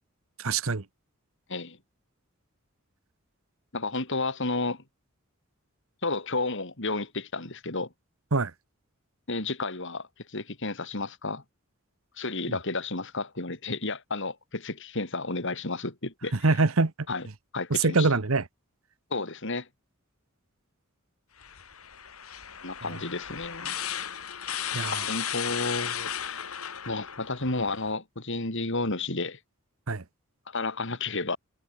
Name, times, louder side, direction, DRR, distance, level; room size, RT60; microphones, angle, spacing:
voice 1, 0.4-0.8 8.3-8.5 16.4-16.9 17.7-18.4 24.7-25.1 29.9-30.0, right 3 dB, 70° right, 1.2 m, -24 dB
voice 2, 3.7-4.8 6.0-7.9 9.3-11.4 12.2-16.6 17.1-17.3 17.5-18.1 19.1-19.7 22.6-23.8 24.9-26.5 26.9-29.4 30.5-31.4, left 3 dB, 60° left, 3.6 m, -32 dB
sound 1, 21.4-27.9, left 9 dB, 85° left, 3.5 m, -35 dB
head